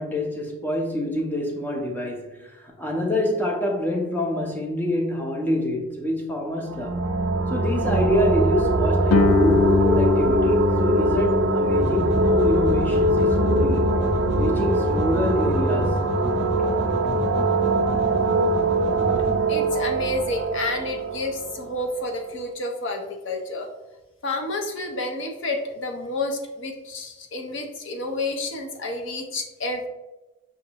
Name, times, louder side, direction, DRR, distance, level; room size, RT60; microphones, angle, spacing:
voice 1, 0.0-7.1 7.5-13.9 14.4-16.0, left 1 dB, 10° left, 0.6 m, -26 dB
sound 1, 6.6-22.2, right 2 dB, 60° right, 0.4 m, -22 dB
Guitar, 9.1-14.5, left 4 dB, 85° left, 0.4 m, -25 dB
sound 2, 11.8-19.3, equal, 35° left, 1.0 m, -31 dB
voice 2, 19.5-23.7 24.2-29.9, left 2 dB, 60° left, 0.7 m, -30 dB
6.3 x 2.5 x 2.9 m
head